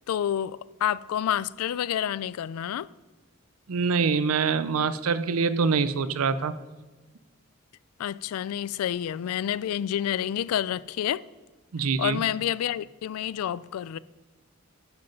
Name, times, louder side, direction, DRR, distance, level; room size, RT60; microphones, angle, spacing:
voice 1, 0.0-2.9 8.0-11.2 12.0-14.0, left 10 dB, 85° left, 0.3 m, -29 dB
voice 2, 3.7-6.6 11.7-12.2, right 5 dB, 80° right, 0.5 m, -25 dB
10.5 x 6.0 x 5.2 m
head